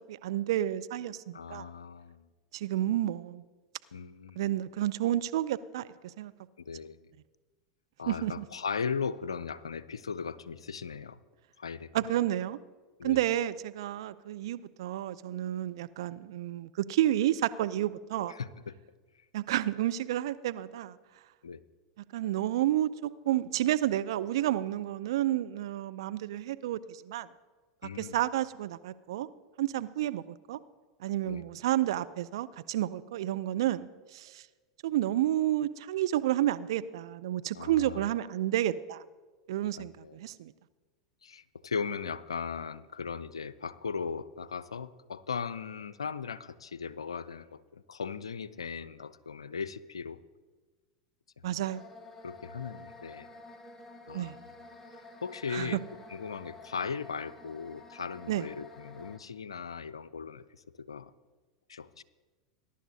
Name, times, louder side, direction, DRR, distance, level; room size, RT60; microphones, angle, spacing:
voice 1, 0.1-1.7 2.5-3.4 4.4-6.3 8.1-8.4 11.9-12.6 13.0-18.3 19.3-21.0 22.1-27.3 28.0-29.3 29.6-30.6 31.0-34.4 34.8-39.0 39.5-40.5 51.4-51.9 54.1-54.4 55.5-55.8 58.3-58.5, right 13 dB, 65° right, 14 dB, 0.5 m, -30 dB
voice 2, 1.3-2.3 3.9-4.4 6.7-7.1 8.0-11.2 11.6-11.9 13.0-13.3 18.3-18.8 21.4-21.6 27.8-28.2 31.2-31.5 37.5-38.0 39.8-40.2 41.2-50.2 51.6-51.7 52.2-53.3 54.1-54.5 54.9-55.8 56.1-60.4 60.8-61.1 61.7-62.0, left 6 dB, 85° left, 17 dB, 0.4 m, -38 dB
sound 1, 51.6-59.2, left 2 dB, 15° left, 1.2 m, -50 dB
21.0 x 11.0 x 2.7 m, 1.3 s
hypercardioid pair, 90°, 3 cm